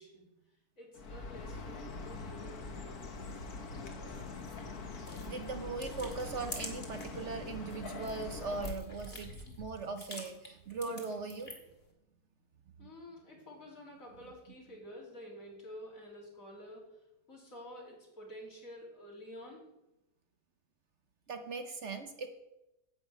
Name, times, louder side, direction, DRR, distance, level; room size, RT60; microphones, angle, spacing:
voice 1, 0.0-3.3 12.8-19.6, equal, 65° left, -3 dB, 3.8 m, -50 dB
Chirp tweet, 0.9-8.7, left 3 dB, 80° left, 1.8 m, -43 dB
sound 1, 4.1-7.2 7.6-11.8, left 2 dB, 40° left, 2.2 m, -48 dB
voice 2, 5.3-9.3 9.6-11.5 12.8-12.9 21.3-22.3, right 4 dB, 55° right, 6 dB, 1.1 m, -39 dB
10.5 x 6.0 x 8.1 m, 0.91 s
omnidirectional pair, 1.6 m